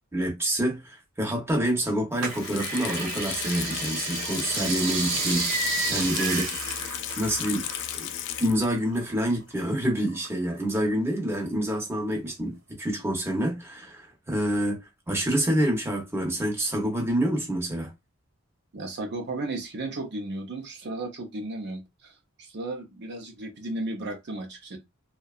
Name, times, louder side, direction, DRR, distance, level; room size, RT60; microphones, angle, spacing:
voice 1, 0.1-6.8 7.2-7.7 7.9-8.1 8.4-14.8 15.1-17.9, right 1 dB, 10° right, 0.7 m, -27 dB
Water tap faucet / Sink (filling or washing), 2.1-8.9 9.2-9.3, left 10 dB, 55° left, 0.3 m, -35 dB
sound 1, 2.2-8.1 8.3-9.6 10.1-10.9 11.4-11.5, right 3 dB, 85° right, 0.8 m, -31 dB
voice 2, 18.7-22.1 22.4-24.8, right 2 dB, 50° right, 0.6 m, -34 dB
2.7 x 2.2 x 2.3 m
head